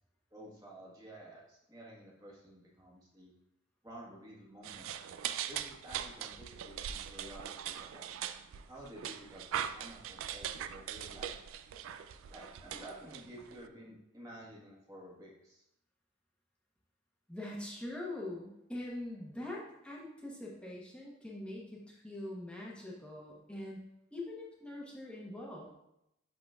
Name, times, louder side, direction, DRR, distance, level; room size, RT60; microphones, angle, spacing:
voice 1, 0.3-3.3 3.8-4.9 5.5-8.1 8.7-11.4 12.3-15.6, right 1 dB, 20° right, -4 dB, 1.4 m, -51 dB
sound 1, 4.6-13.6, right 9 dB, 75° right, 0.3 m, -41 dB
voice 2, 17.3-23.8 24.1-25.7, left 1 dB, 5° left, -4 dB, 1.0 m, -43 dB
10.5 x 3.8 x 2.4 m, 0.82 s
head